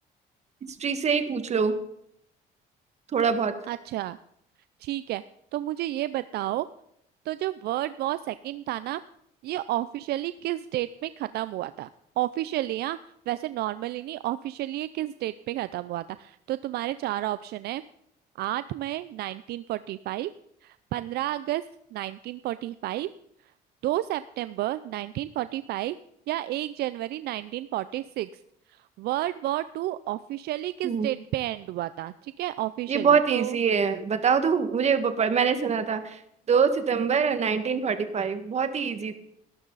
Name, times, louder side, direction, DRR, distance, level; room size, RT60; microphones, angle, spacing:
voice 1, 0.6-1.8 3.1-3.5 30.8-31.1 32.9-36.2 36.5-39.1, right 6 dB, 40° right, 9 dB, 1.8 m, -24 dB
voice 2, 3.7-4.2 4.8-5.2 5.5-6.7 7.3-9.0 9.4-11.9 12.2-13.0 13.3-17.8 18.4-20.3 20.6-21.6 21.9-23.1 23.8-26.0 26.3-28.3 28.7-33.6, right 15 dB, 70° right, 15 dB, 0.5 m, -31 dB
19.0 x 11.5 x 4.1 m, 0.74 s
cardioid pair, 110°, 17 cm